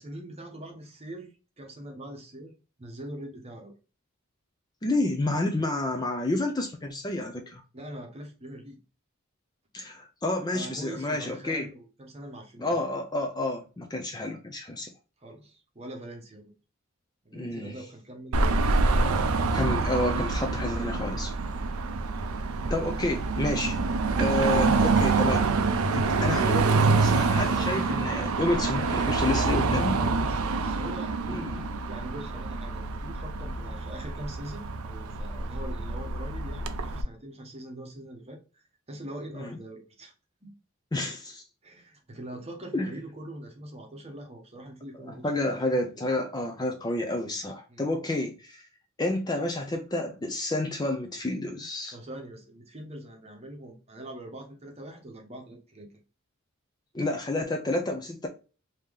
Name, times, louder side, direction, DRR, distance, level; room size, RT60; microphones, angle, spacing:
voice 1, 0.0-2.5 2.8-3.7 7.7-8.8 10.5-12.8 15.2-16.5 17.2-19.4 26.2-26.5 29.9-31.4 31.9-38.6 38.9-40.1 40.4-40.5 41.6-45.3 47.7-47.9 51.9-55.9, right 1 dB, 30° right, 0.9 m, -43 dB
voice 2, 4.8-7.6 9.7-11.7 12.6-14.9 17.3-17.7 19.5-21.3 22.7-23.8 24.2-25.5 25.9-30.0 31.3-31.6 39.4-39.6 40.9-41.4 42.7-42.9 45.0-48.6 49.0-51.9 56.9-58.3, left 2 dB, 20° left, 0.4 m, -30 dB
Car passing by / Traffic noise roadway noise / Engine, 18.3-37.0, right 3 dB, 85° right, 0.5 m, -26 dB
3.3 x 2.8 x 3.4 m
head